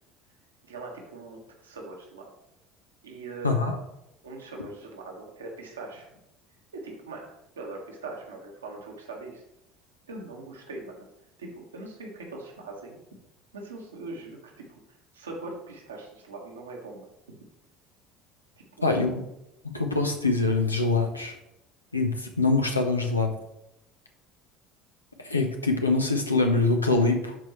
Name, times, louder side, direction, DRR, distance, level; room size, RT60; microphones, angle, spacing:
voice 1, 0.6-2.3 3.0-3.7 4.2-6.1 6.7-9.4 10.1-11.0 11.4-13.0 13.5-14.8 15.1-17.4 18.8-19.1, right 3 dB, 80° right, 0 dB, 1.6 m, -41 dB
voice 2, 3.4-3.8 18.8-19.1 19.7-21.3 21.9-23.3 25.2-27.4, left 3 dB, 90° left, 4 dB, 0.9 m, -24 dB
12.0 x 4.5 x 3.2 m, 0.84 s
figure-of-eight pair, 65°, 0 cm